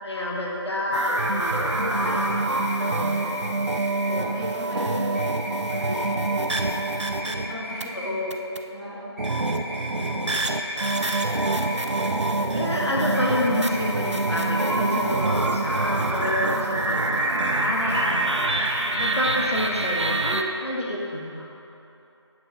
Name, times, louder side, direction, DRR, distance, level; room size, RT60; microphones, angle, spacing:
voice 1, 0.0-2.2 2.8-3.4 4.1-4.4 7.9-8.3 10.0-10.4 12.5-21.5, left 1 dB, 70° left, -3 dB, 1.2 m, -29 dB
sound 1, 0.9-7.8 8.3-8.6 9.2-20.4, right 2 dB, 80° right, 0.6 m, -25 dB
sound 2, 1.2-4.1 5.1-8.1 9.2-12.1 13.1-16.2 17.2-17.9 18.2-18.9 19.2-19.9 20.2-20.3, equal, 35° right, 1.3 m, -37 dB
voice 2, 1.7-2.3 4.2-6.5 7.0-8.2 8.7-9.1, equal, 5° left, -19 dB, 1.7 m, -36 dB
7.9 x 6.4 x 3.8 m, 3.0 s
figure-of-eight pair, 170°, 15 cm